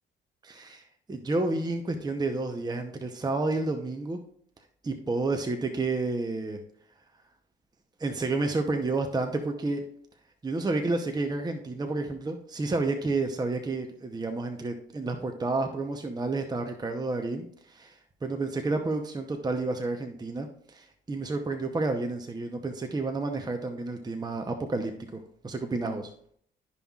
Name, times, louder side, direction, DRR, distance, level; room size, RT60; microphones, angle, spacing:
voice 1, 0.4-0.8 1.1-4.2 4.8-6.6 8.0-9.8 10.4-17.9 18.2-26.1, right 3 dB, 20° right, 5 dB, 0.8 m, -30 dB
12.0 x 5.5 x 2.4 m, 0.63 s
cardioid pair, 90°, 20 cm